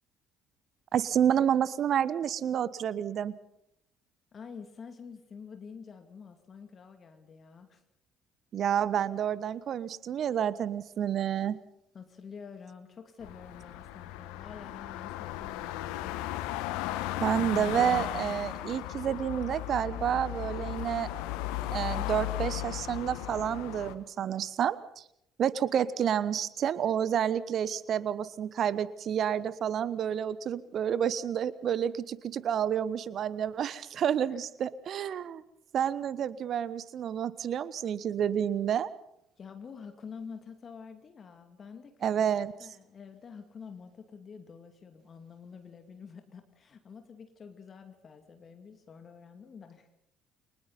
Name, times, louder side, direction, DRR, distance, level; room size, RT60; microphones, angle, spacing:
voice 1, 0.9-3.3 8.5-11.6 17.2-21.1 21.7-25.0 25.4-35.4 35.7-38.9 42.0-42.5, right 9 dB, 50° right, 18 dB, 1.1 m, -29 dB
voice 2, 4.3-7.8 11.9-16.5 34.1-34.5 39.4-42.1 42.4-49.9, left 6 dB, 40° left, 7 dB, 2.5 m, -48 dB
sound 1, 13.2-23.9, left 15 dB, 65° left, 1.3 m, -36 dB
29.5 x 24.0 x 4.1 m, 0.76 s
figure-of-eight pair, 50°, 0 cm